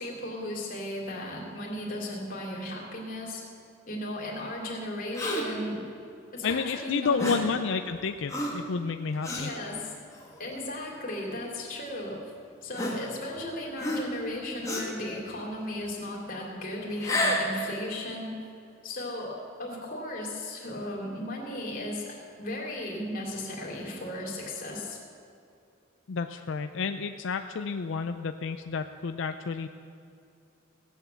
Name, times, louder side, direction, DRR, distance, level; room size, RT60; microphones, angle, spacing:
voice 1, 0.0-3.4 3.9-5.8 6.3-7.5 9.3-9.9 10.4-12.3 12.6-18.4 18.8-25.0, left 1 dB, 45° left, -2 dB, 3.1 m, -36 dB
Gasp, 5.1-5.6 7.2-7.5 8.3-8.7 9.2-9.5 10.2-10.4 11.4-11.5 12.7-13.4 13.8-14.2 14.6-15.0 16.9-17.5, left 1 dB, 15° left, 1.9 m, -30 dB
voice 2, 6.4-9.5 26.1-29.7, left 5 dB, 65° left, 8 dB, 0.5 m, -30 dB
17.0 x 8.3 x 7.0 m, 2.5 s
head